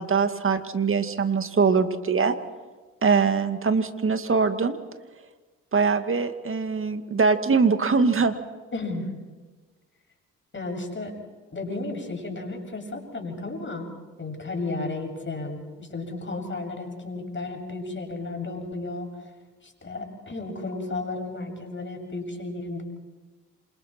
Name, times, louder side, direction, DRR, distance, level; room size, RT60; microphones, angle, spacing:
voice 1, 0.0-2.4 3.0-4.8 5.7-8.3, right 5 dB, 35° right, 8 dB, 2.2 m, -22 dB
voice 2, 8.7-9.1 10.5-11.1 11.5-13.9 14.2-19.3 19.6-22.8, left 2 dB, 30° left, 3 dB, 7.5 m, -33 dB
28.5 x 26.5 x 4.5 m, 1.3 s
hypercardioid pair, 45°, 36 cm